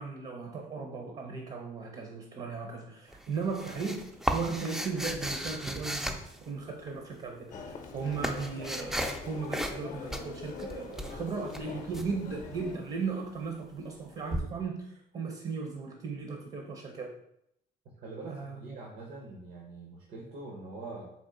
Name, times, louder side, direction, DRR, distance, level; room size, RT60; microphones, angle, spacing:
voice 1, 0.0-6.2 6.5-17.1 18.3-18.6, right 4 dB, 40° right, 2 dB, 0.6 m, -37 dB
sound 1, 3.1-6.9 7.7-9.2 9.5-9.8 10.1-12.1 14.3-14.4, equal, 5° right, 0.3 m, -35 dB
Human voice, 7.5-12.8, left 5 dB, 50° left, 0.6 m, -43 dB
voice 2, 17.8-21.1, right 2 dB, 70° right, -1 dB, 0.8 m, -44 dB
3.7 x 2.4 x 3.7 m, 0.76 s
cardioid pair, 110°, 17 cm